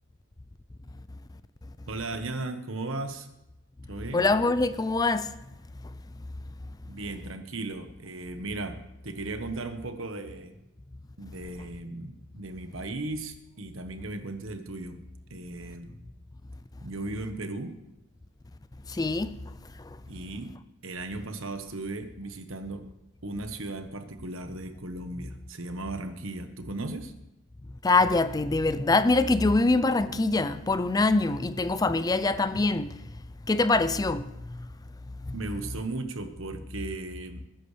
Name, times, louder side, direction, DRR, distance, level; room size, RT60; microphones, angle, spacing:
voice 1, 1.9-3.3 3.9-4.3 6.9-10.6 11.2-15.0 15.3-15.9 16.8-17.8 20.1-20.5 20.8-22.8 23.2-27.1 35.3-37.4, right 2 dB, 75° right, 1.3 m, -36 dB
voice 2, 4.1-5.3 18.9-19.3 27.8-32.9 33.5-34.3 35.3-35.4, left 3 dB, 20° left, 0.4 m, -24 dB
20.5 x 10.5 x 3.3 m
head